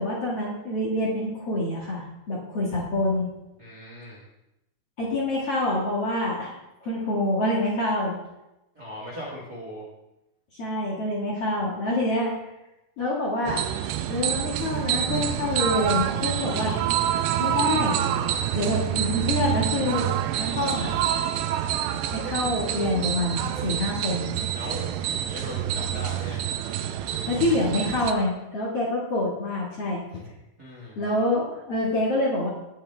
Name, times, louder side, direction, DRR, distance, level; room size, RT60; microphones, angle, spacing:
voice 1, 0.0-3.3 5.0-6.5 6.8-8.2 10.6-12.3 13.0-13.8 14.1-16.8 17.4-18.0 18.5-20.9 22.1-24.2 27.3-30.2 31.0-32.5, left 1 dB, 45° left, -5 dB, 2.2 m, -26 dB
voice 2, 3.6-4.2 8.7-9.9 24.5-26.4 30.6-31.0, equal, 35° right, -4 dB, 1.8 m, -38 dB
sound 1, 13.5-28.1, right 11 dB, 85° right, 2.8 m, -27 dB
19.0 x 7.1 x 3.4 m, 0.91 s
omnidirectional pair, 4.9 m